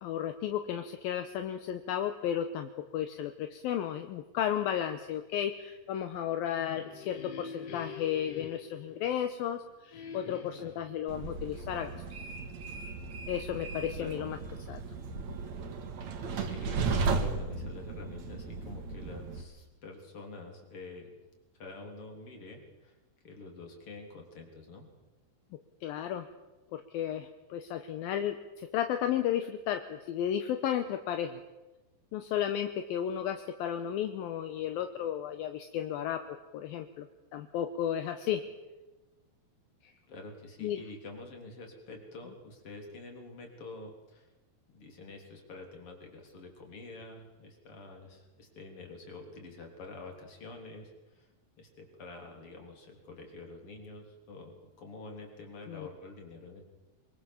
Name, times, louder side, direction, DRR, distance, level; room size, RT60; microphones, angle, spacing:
voice 1, 0.0-11.9 13.3-14.4 14.7-14.8 25.8-26.3 26.7-31.4 32.1-37.1 37.3-38.4 39.8-39.9 40.6-40.8 55.7-55.9, left 10 dB, 75° left, 8 dB, 2.4 m, -33 dB
sound 1, 6.4-9.5 9.9-10.9, left 6 dB, 90° left, 4.4 m, -45 dB
Train, 11.1-19.4, right 4 dB, 50° right, 2.6 m, -35 dB
voice 2, 16.3-21.1 21.6-22.9 23.2-24.9 40.1-44.3 44.7-51.3 51.6-56.6, left 3 dB, 35° left, 2 dB, 4.1 m, -47 dB
23.5 x 23.0 x 7.2 m, 1.1 s
omnidirectional pair, 4.9 m